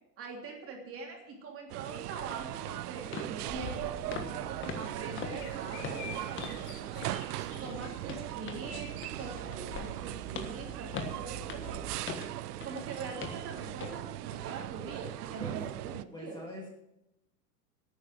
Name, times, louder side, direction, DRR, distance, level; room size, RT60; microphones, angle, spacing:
voice 1, 0.2-7.1 7.6-11.9 12.6-16.4, right 4 dB, 25° right, 1 dB, 3.2 m, -43 dB
sound 1, 1.7-16.0, right 15 dB, 65° right, 0.7 m, -39 dB
sound 2, 2.5-2.6 3.1-3.3 3.6-3.8 4.1-4.4 4.6-6.7 7.0-7.2 7.6-12.9 13.2-13.4 13.8-14.0 14.4-14.6, left 6 dB, 25° left, 1.5 m, -42 dB
Bird vocalization bird call bird song, 3.5-11.9, right 1 dB, 40° left, 4.8 m, -47 dB
voice 2, 16.1-16.7, left 1 dB, 10° left, -1 dB, 2.5 m, -43 dB
11.5 x 9.2 x 7.8 m, 0.85 s
supercardioid pair, 140°, 50 cm